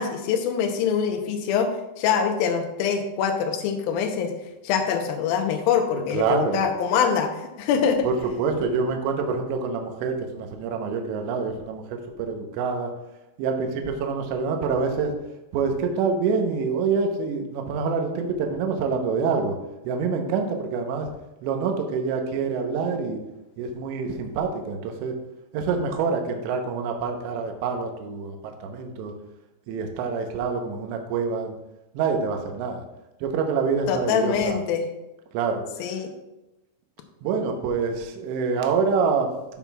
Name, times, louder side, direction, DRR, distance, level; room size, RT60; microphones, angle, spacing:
voice 1, 0.0-4.3 4.6-8.1 33.9-34.9 35.8-36.1, left 7 dB, 80° left, 5 dB, 2.1 m, -24 dB
voice 2, 5.9-6.6 8.0-12.9 13.4-15.1 15.5-19.5 19.8-21.1 21.4-23.2 23.6-25.2 25.5-29.1 29.7-31.5 31.9-32.8 33.2-34.6 35.3-36.0 37.2-39.6, right 5 dB, 80° right, 3 dB, 3.1 m, -26 dB
15.0 x 5.9 x 2.4 m, 0.96 s
omnidirectional pair, 5.3 m